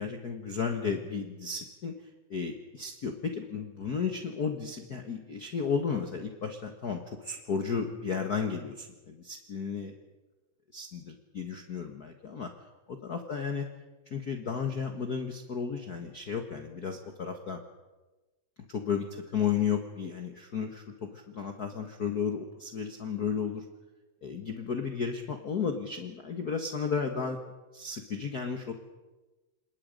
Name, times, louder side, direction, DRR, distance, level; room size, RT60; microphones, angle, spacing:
voice 1, 0.0-9.9 10.7-12.5 12.9-13.7 14.1-17.6 18.7-23.7 24.2-27.4 27.7-28.7, left 6 dB, 45° left, 5 dB, 1.3 m, -33 dB
27.0 x 21.0 x 5.2 m, 1.2 s
omnidirectional pair, 3.4 m